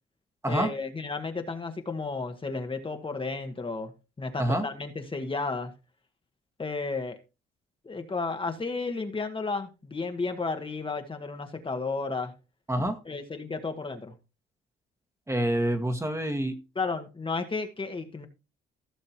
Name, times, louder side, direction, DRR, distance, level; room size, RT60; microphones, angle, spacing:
voice 1, 0.5-3.9 4.2-5.7 6.6-7.2 7.8-12.3 13.1-14.1 16.7-18.3, left 3 dB, 25° left, 1.5 m, -33 dB
voice 2, 12.7-13.0 15.3-16.5, right 1 dB, 15° right, 1.6 m, -27 dB
16.0 x 6.5 x 2.9 m
cardioid pair, 90°, 20 cm